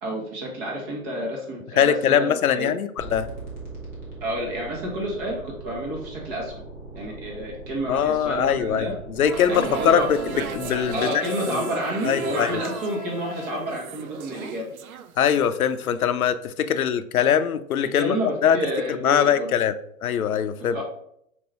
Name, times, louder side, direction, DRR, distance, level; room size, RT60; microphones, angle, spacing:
voice 1, 0.0-2.7 4.2-6.6 6.9-9.0 9.5-10.1 10.9-14.7 17.8-19.5 20.7-20.8, right 1 dB, 35° right, -1 dB, 1.2 m, -30 dB
voice 2, 1.8-3.3 7.9-11.7 12.0-12.6 15.2-18.2 18.4-18.6 18.9-19.7 20.0-20.8, left 8 dB, 80° left, 11 dB, 0.6 m, -22 dB
sound 1, 3.0-11.0, right 3 dB, 10° right, 0.3 m, -40 dB
Wind instrument woodwind instrument, 9.2-13.7, left 6 dB, 45° left, 0.9 m, -38 dB
sound 2, 9.2-15.4 15.7-15.9, right 7 dB, 80° right, 0.5 m, -35 dB
5.1 x 2.7 x 3.3 m, 0.72 s
hypercardioid pair, 120°, 42 cm